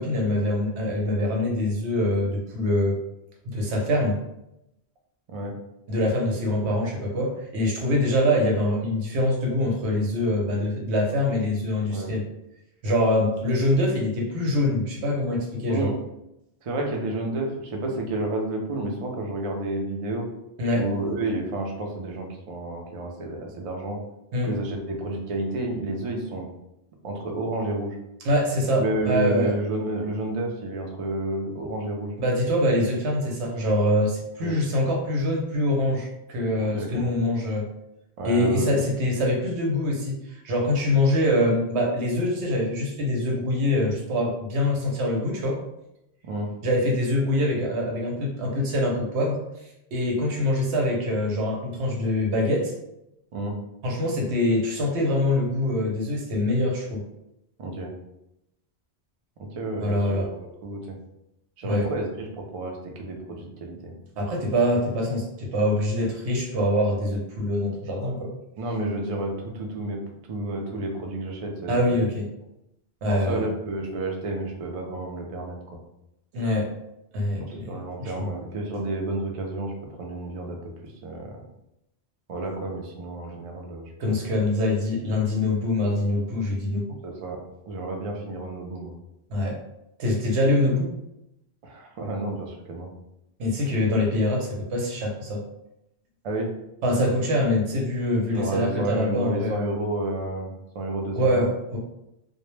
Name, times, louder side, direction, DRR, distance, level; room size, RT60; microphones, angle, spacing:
voice 1, 0.0-3.0 3.4-4.2 5.9-12.2 12.8-15.9 20.6-20.8 24.3-24.5 28.2-29.5 32.2-37.7 38.2-45.6 46.6-49.4 49.9-52.7 53.8-57.0 59.8-60.3 61.6-61.9 64.2-68.3 71.7-72.2 73.0-73.5 76.3-76.7 77.1-78.3 84.0-86.9 89.3-89.6 90.0-90.9 93.4-95.4 96.8-99.7 101.2-101.8, left 1 dB, 85° right, 0 dB, 0.9 m, -24 dB
voice 2, 16.6-20.3 20.7-24.0 24.4-26.4 27.0-28.0 28.7-32.1 34.4-34.6 36.6-37.1 38.2-38.7 46.2-46.5 53.3-53.6 57.6-57.9 59.4-60.3 60.6-61.0 61.6-63.9 68.6-70.0 70.3-72.0 73.1-75.6 77.5-79.7 80.0-80.6 80.8-81.4 82.3-84.2 87.0-87.4 87.7-88.9 91.6-92.9 96.2-96.5 98.3-101.5, right 2 dB, 60° right, 1 dB, 0.3 m, -30 dB
2.0 x 2.0 x 3.0 m, 0.86 s
omnidirectional pair, 1.1 m